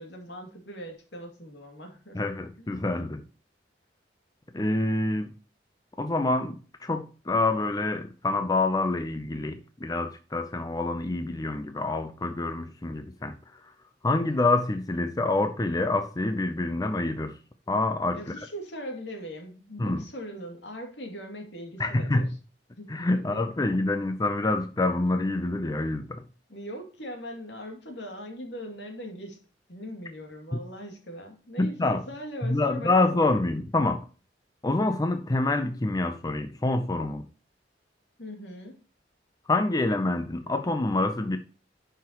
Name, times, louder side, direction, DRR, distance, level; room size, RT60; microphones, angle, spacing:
voice 1, 0.0-2.9 14.2-14.3 18.1-22.3 22.8-23.4 26.5-29.4 29.7-33.2 38.2-38.8, equal, 70° left, 2.5 m, -40 dB
voice 2, 2.1-3.2 4.5-5.3 6.0-13.7 14.0-17.4 17.7-18.3 19.8-20.0 21.8-22.3 22.9-26.2 31.6-32.0 32.4-34.0 34.6-37.3 39.5-41.4, left 2 dB, 20° left, 0.5 m, -27 dB
10.5 x 5.7 x 2.9 m
head